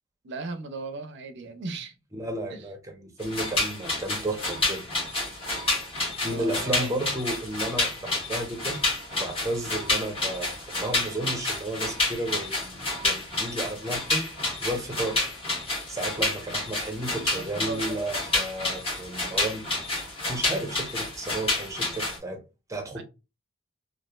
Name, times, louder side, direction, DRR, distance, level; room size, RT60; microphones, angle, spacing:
voice 1, 0.2-1.9 2.5-2.7 6.2-6.9 17.1-17.9 23.0-23.1, right 3 dB, 60° right, 0.5 m, -37 dB
voice 2, 2.1-4.8 6.2-8.8 9.1-15.2 15.9-19.7 20.3-22.4 22.7-23.0, right 1 dB, 15° right, 0.7 m, -33 dB
sound 1, 3.2-22.2, left 2 dB, 30° left, 1.3 m, -29 dB
3.0 x 2.4 x 2.3 m
head